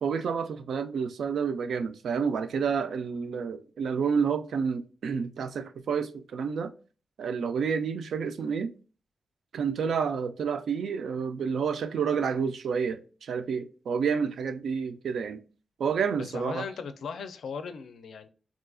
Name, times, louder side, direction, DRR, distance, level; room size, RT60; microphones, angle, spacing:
voice 1, 0.0-6.7 7.2-8.7 9.5-15.4 15.8-16.7, right 6 dB, 80° right, 0.3 m, -29 dB
voice 2, 16.2-18.3, left 5 dB, 80° left, 0.4 m, -37 dB
3.7 x 2.3 x 2.4 m
wide cardioid pair, 160°, 0 cm